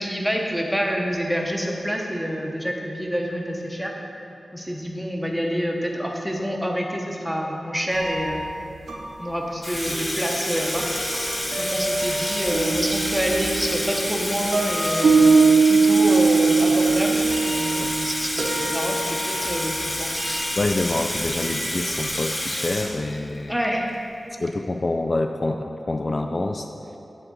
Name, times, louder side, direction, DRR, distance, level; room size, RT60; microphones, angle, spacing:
voice 1, 0.0-3.9 4.5-8.5 9.2-11.3 11.6-20.5 23.5-23.9, equal, 5° right, 0 dB, 1.0 m, -27 dB
sound 1, 7.9-8.5 8.9-9.0 9.9-19.9 20.2-20.6 21.2-22.1, right 4 dB, 85° right, 0.9 m, -22 dB
Water tap faucet / Sink (filling or washing), 9.6-23.4, left 1 dB, 30° left, 1.8 m, -29 dB
voice 2, 20.6-23.6 24.4-26.7, left 2 dB, 45° left, 5 dB, 0.3 m, -26 dB
7.7 x 3.8 x 6.2 m, 2.9 s
cardioid pair, 55°, 0 cm